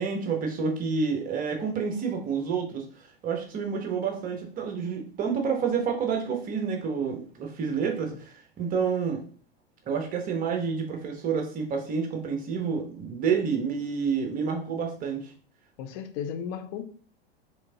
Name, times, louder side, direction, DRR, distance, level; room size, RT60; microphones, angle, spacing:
voice 1, 0.0-2.9 3.2-9.2 9.9-15.3, right 6 dB, 25° right, 3 dB, 1.0 m, -29 dB
voice 2, 15.8-16.8, left 8 dB, 35° left, 9 dB, 0.6 m, -34 dB
4.9 x 3.6 x 2.8 m, 0.43 s
figure-of-eight pair, 90°, 31 cm